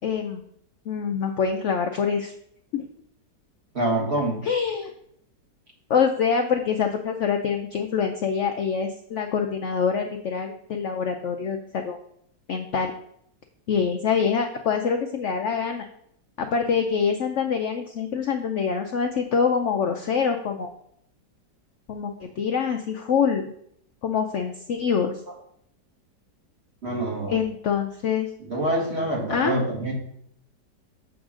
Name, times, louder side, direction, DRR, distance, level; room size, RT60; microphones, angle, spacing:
voice 1, 0.0-0.4 0.9-2.3 2.7-2.9 4.4-4.9 5.9-12.0 12.5-12.9 13.7-15.8 16.4-20.7 21.9-23.5 24.0-25.1 27.3-28.3 29.3-29.5, left 6 dB, 80° left, 4 dB, 0.6 m, -25 dB
voice 2, 3.7-4.4 26.8-27.4 28.5-29.9, right 1 dB, 40° right, -2 dB, 1.9 m, -25 dB
7.1 x 3.7 x 6.1 m, 0.70 s
omnidirectional pair, 1.9 m